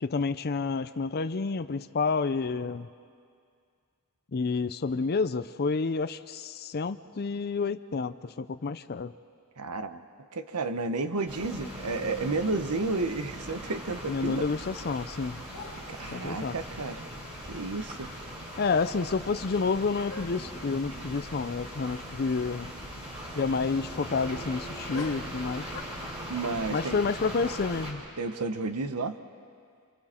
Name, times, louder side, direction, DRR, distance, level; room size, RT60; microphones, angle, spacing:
voice 1, 0.0-2.9 4.3-9.1 14.1-15.4 16.1-16.5 18.6-22.7 23.4-25.7 26.7-28.0, left 4 dB, 45° left, 11 dB, 0.5 m, -29 dB
voice 2, 9.6-10.0 10.3-14.4 15.9-17.0 17.5-18.1 26.3-27.0 28.2-29.2, right 3 dB, 90° right, 9 dB, 1.0 m, -31 dB
sound 1, 11.3-27.9, equal, 30° right, 4.8 m, -40 dB
sound 2, 14.5-15.2 15.5-16.3 17.7-17.8 18.1-18.6 18.9-19.0 20.1-20.6 21.3-21.5 21.8-21.9 24.9-25.8, left 3 dB, 65° left, 1.8 m, -45 dB
29.0 x 27.0 x 4.4 m, 2.2 s
head